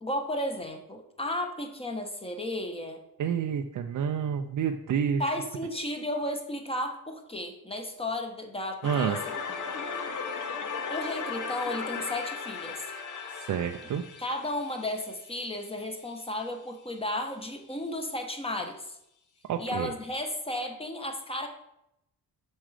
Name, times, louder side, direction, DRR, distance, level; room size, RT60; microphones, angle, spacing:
voice 1, 0.0-3.0 5.2-9.2 10.9-12.9 14.2-19.0 19.6-21.5, left 1 dB, 15° left, 4 dB, 1.3 m, -34 dB
voice 2, 3.2-5.2 8.8-9.2 13.5-14.0 19.5-19.9, right 8 dB, 55° right, 4 dB, 0.7 m, -28 dB
sound 1, 8.8-15.7, left 5 dB, 55° left, 1.1 m, -36 dB
7.5 x 6.3 x 5.0 m, 0.82 s
cardioid pair, 125°, 37 cm